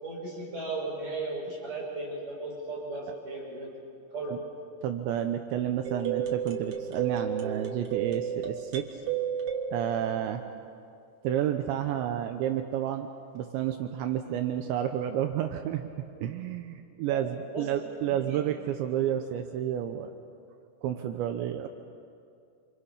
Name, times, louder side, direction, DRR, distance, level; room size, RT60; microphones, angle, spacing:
voice 1, 0.0-3.7 4.1-4.4 17.1-17.2 17.5-17.7 18.1-18.4, right 3 dB, 45° right, -4 dB, 8.0 m, -36 dB
voice 2, 4.8-8.9 9.7-10.4 11.2-13.1 13.3-15.9 16.2-20.1 20.8-21.7, right 10 dB, 80° right, 6 dB, 3.1 m, -30 dB
sound 1, 5.8-11.0, right 8 dB, 65° right, 1.5 m, -33 dB
28.0 x 27.5 x 5.8 m, 2.4 s
omnidirectional pair, 5.3 m